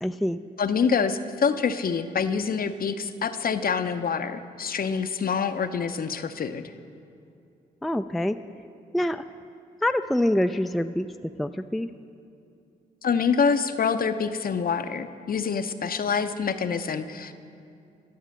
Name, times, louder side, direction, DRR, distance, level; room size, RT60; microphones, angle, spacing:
voice 1, 0.0-0.4 7.8-8.4 8.9-9.2 9.8-11.9, left 1 dB, ahead, 9 dB, 0.3 m, -25 dB
voice 2, 0.6-6.7 13.0-17.3, left 6 dB, 50° left, 10 dB, 0.6 m, -26 dB
12.0 x 6.5 x 6.4 m, 2.5 s
hypercardioid pair, 40°, 19 cm